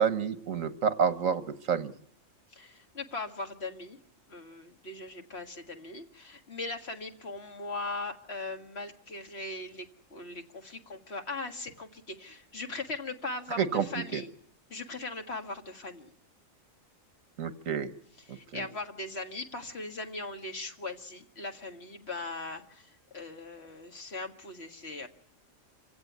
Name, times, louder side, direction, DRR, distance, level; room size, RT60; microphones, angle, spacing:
voice 1, 0.0-1.4 1.7-1.9 13.6-13.9 14.1-14.2 17.4-17.9 18.5-18.6, right 7 dB, 80° right, 11 dB, 1.6 m, -28 dB
voice 2, 2.5-4.0 4.3-9.9 10.1-14.3 14.7-16.1 18.2-25.1, left 2 dB, 50° left, 4 dB, 2.0 m, -39 dB
26.0 x 16.5 x 9.4 m, 0.71 s
omnidirectional pair, 1.4 m